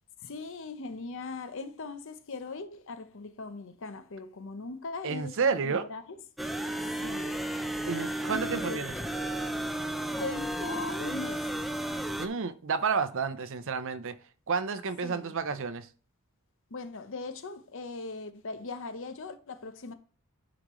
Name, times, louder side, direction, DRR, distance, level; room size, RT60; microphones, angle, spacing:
voice 1, 0.2-6.2 7.0-7.5 8.3-8.8 10.2-11.5 15.0-15.6 16.7-19.9, left 3 dB, 65° left, 0.8 m, -40 dB
voice 2, 5.0-5.9 7.8-8.9 12.2-14.2 14.5-15.9, right 5 dB, 65° right, 0.7 m, -30 dB
sound 1, 6.4-12.3, right 1 dB, ahead, 0.6 m, -33 dB
10.0 x 5.1 x 3.1 m
head